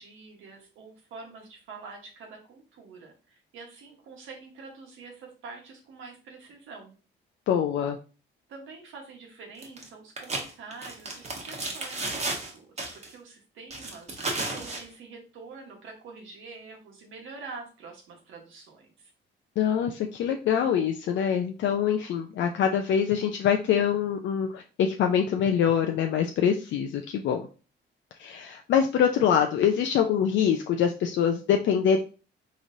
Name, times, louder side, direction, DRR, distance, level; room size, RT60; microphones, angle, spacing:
voice 1, 0.0-7.0 8.5-19.1, right 4 dB, 85° right, 2 dB, 1.2 m, -46 dB
voice 2, 7.5-8.0 19.6-27.5 28.2-32.0, left 8 dB, 70° left, 4 dB, 0.4 m, -24 dB
sound 1, 9.6-9.9 10.2-12.5 12.8-13.1 13.7-14.8, right 2 dB, 35° right, 1.1 m, -33 dB
3.8 x 3.1 x 2.6 m, 0.35 s
cardioid pair, 90°, 20 cm